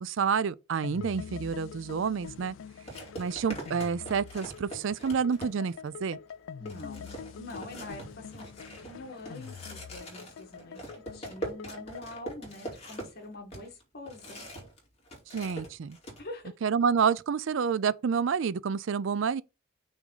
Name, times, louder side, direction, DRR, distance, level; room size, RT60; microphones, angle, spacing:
voice 1, 0.0-2.6 3.2-6.2 15.3-16.0 16.6-19.4, right 6 dB, 65° right, 0.4 m, -28 dB
sound 1, 0.8-12.1, left 6 dB, 70° left, 0.3 m, -45 dB
sound 2, 1.9-2.1 2.9-5.9 6.3-6.4 6.7-14.8 15.1-16.2, right 1 dB, 30° left, 2.7 m, -43 dB
voice 2, 6.6-8.5 8.8-14.4 16.2-16.5, left 2 dB, 50° left, 2.0 m, -45 dB
6.1 x 3.7 x 5.6 m
head